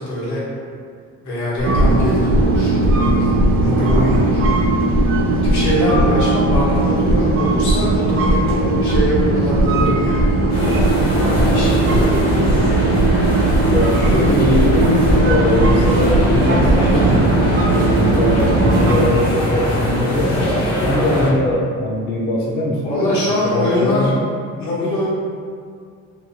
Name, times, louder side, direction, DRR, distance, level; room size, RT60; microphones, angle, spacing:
voice 1, 0.1-0.4 1.2-4.4 5.3-10.3 11.5-11.9 22.8-24.1 24.6-25.1, left 1 dB, 75° left, -8 dB, 1.1 m, -23 dB
sound 1, 1.6-19.1, right 2 dB, 45° right, 0.4 m, -18 dB
sound 2, 1.6-17.0, equal, 90° right, 0.9 m, -21 dB
voice 2, 3.6-4.0 13.6-23.2 23.4-24.2, left 1 dB, 35° left, -3 dB, 0.4 m, -21 dB
sound 3, 10.5-21.3, right 1 dB, 55° left, 0.9 m, -21 dB
2.8 x 2.2 x 2.7 m, 2.1 s
cardioid pair, 90°, 30 cm